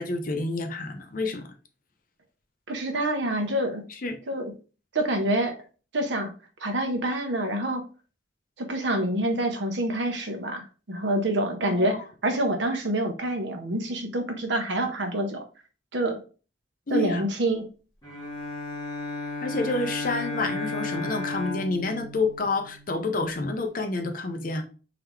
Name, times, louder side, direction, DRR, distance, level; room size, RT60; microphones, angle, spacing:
voice 1, 0.0-1.4 4.0-4.2 11.6-12.0 16.9-17.2 19.4-24.6, left 3 dB, 50° left, 0.7 m, -28 dB
voice 2, 2.7-3.8 4.3-4.5 4.9-5.5 5.9-6.3 6.6-7.8 8.6-15.4 15.9-16.2 16.9-17.6, right 1 dB, 75° right, 0.9 m, -27 dB
Bowed string instrument, 18.0-23.3, left 2 dB, 20° left, 1.8 m, -34 dB
3.8 x 3.4 x 3.1 m
head